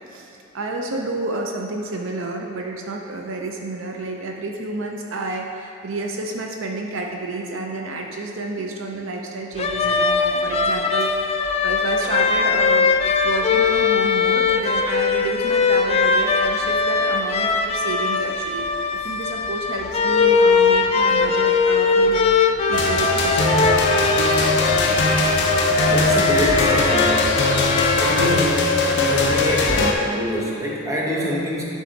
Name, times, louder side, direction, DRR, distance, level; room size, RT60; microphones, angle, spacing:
voice 1, 0.1-12.9 13.2-23.8, right 2 dB, 65° right, 1 dB, 0.5 m, -30 dB
sound 1, 9.6-28.2, left 4 dB, 30° left, 0.3 m, -20 dB
sound 2, 22.7-29.9, left 3 dB, 60° left, 0.7 m, -20 dB
voice 2, 25.9-27.4 28.0-28.8 29.1-31.6, equal, 15° right, -4 dB, 1.0 m, -25 dB
10.0 x 4.0 x 3.9 m, 2.5 s
head